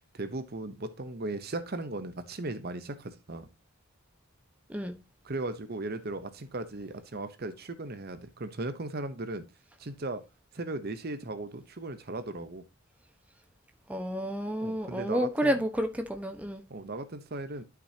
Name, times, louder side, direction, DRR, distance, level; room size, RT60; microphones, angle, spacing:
voice 1, 0.1-3.5 5.2-9.4 9.8-10.2 10.5-12.6 14.6-15.5 16.7-17.6, right 2 dB, 45° right, 0.8 m, -37 dB
voice 2, 13.9-16.6, equal, 5° right, 1.0 m, -30 dB
11.5 x 6.0 x 2.8 m
head